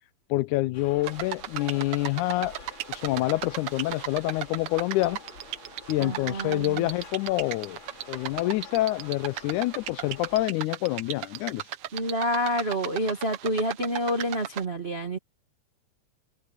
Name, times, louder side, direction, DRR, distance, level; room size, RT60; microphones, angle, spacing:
voice 1, 0.3-2.5 2.9-5.2 5.9-7.8 8.1-11.6, left 18 dB, 85° left, 2.1 m, -27 dB
sound 1, 0.7-10.5, left 4 dB, 40° left, 3.5 m, -48 dB
sound 2, 1.0-14.6, right 13 dB, 70° right, 1.4 m, -37 dB
voice 2, 6.0-6.9 11.9-15.2, equal, 40° right, 0.8 m, -28 dB
open air
omnidirectional pair, 3.4 m